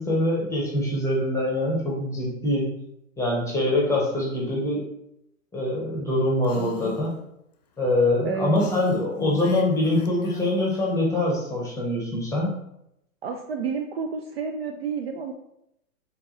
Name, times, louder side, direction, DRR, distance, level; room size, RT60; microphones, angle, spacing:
voice 1, 0.0-2.6 3.2-4.8 5.5-7.2 7.8-12.5, left 1 dB, 5° left, -3 dB, 1.0 m, -24 dB
Female speech woman speaking, 6.4-7.1 8.6-10.8, left 7 dB, 35° left, 0.4 m, -36 dB
voice 2, 13.2-15.3, right 6 dB, 45° right, 4 dB, 0.4 m, -30 dB
3.5 x 3.5 x 3.0 m, 0.79 s
figure-of-eight pair, 105°, 42 cm